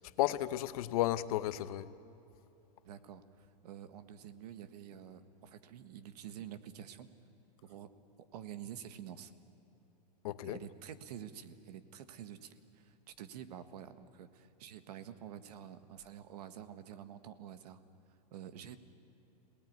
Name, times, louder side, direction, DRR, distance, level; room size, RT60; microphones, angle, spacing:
voice 1, 0.0-1.9 10.2-10.6, left 14 dB, 60° left, 13 dB, 1.0 m, -33 dB
voice 2, 2.8-7.1 7.6-7.9 8.3-9.3 10.4-17.8 18.3-18.8, right 9 dB, 65° right, 11 dB, 1.6 m, -48 dB
26.5 x 19.0 x 9.5 m, 2.9 s
supercardioid pair, 155°, 21 cm